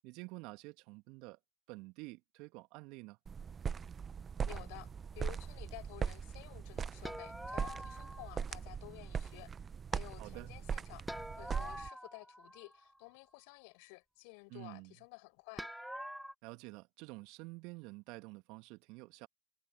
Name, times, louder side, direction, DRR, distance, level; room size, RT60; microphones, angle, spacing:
voice 1, 0.0-1.4 1.7-3.2 10.2-10.5 14.5-14.9 16.4-19.3, right 25 dB, 55° right, 1.9 m, -49 dB
sound 1, 3.3-11.9, right 6 dB, 30° right, 1.0 m, -40 dB
voice 2, 4.4-9.5 9.9-11.1 11.4-15.7, left 35 dB, 60° left, 6.0 m, -53 dB
sound 2, 7.0-8.4 11.1-13.0 15.6-16.3, equal, ahead, 1.3 m, -45 dB
figure-of-eight pair, 75°, 0 cm